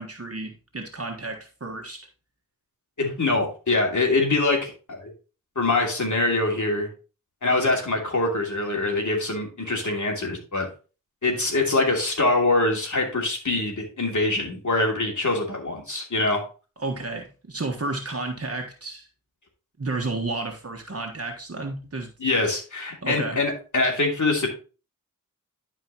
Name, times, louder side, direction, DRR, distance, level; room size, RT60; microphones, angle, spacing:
voice 1, 0.0-2.0 16.8-19.1 19.8-22.1 23.0-23.4, right 2 dB, 45° right, 2 dB, 1.4 m, -32 dB
voice 2, 3.0-5.1 5.6-6.9 7.4-10.7 11.2-16.4 22.2-24.5, left 2 dB, 65° left, 0 dB, 2.8 m, -24 dB
11.5 x 4.7 x 3.0 m, 0.35 s
cardioid pair, 40°, 32 cm